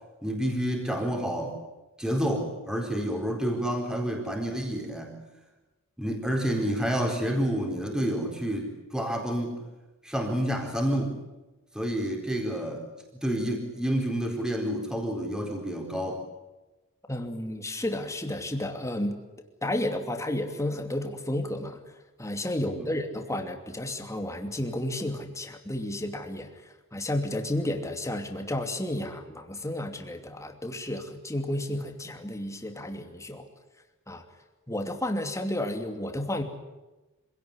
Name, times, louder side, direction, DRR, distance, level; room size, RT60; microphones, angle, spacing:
voice 1, 0.2-1.6 2.0-5.2 6.0-9.6 10.0-11.2 11.7-12.9 13.2-16.2 22.6-22.9, equal, 5° right, 1 dB, 4.3 m, -29 dB
voice 2, 17.1-19.2 19.6-21.8 22.2-33.5 34.1-34.2 34.7-36.4, left 1 dB, 15° left, 5 dB, 2.7 m, -32 dB
26.0 x 17.5 x 9.9 m, 1.1 s
head